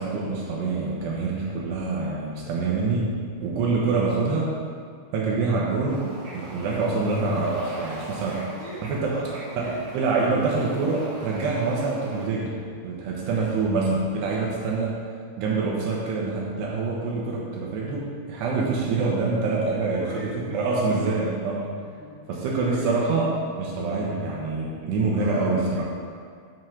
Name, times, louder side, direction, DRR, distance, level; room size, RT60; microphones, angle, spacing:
voice 1, 0.0-4.5 5.1-8.4 8.8-9.2 9.6-12.6 12.8-14.9 15.4-21.7 22.3-25.8, right 3 dB, 75° right, -3 dB, 2.9 m, -26 dB
Bird / Ocean, 5.9-12.3, right 1 dB, 55° right, 1.9 m, -42 dB
voice 2, 8.4-9.9 13.2-13.5 19.9-21.1 22.0-22.2 22.6-23.2 25.2-25.8, left 1 dB, 65° left, -10 dB, 1.2 m, -40 dB
10.0 x 4.7 x 5.9 m, 2.1 s
omnidirectional pair, 5.4 m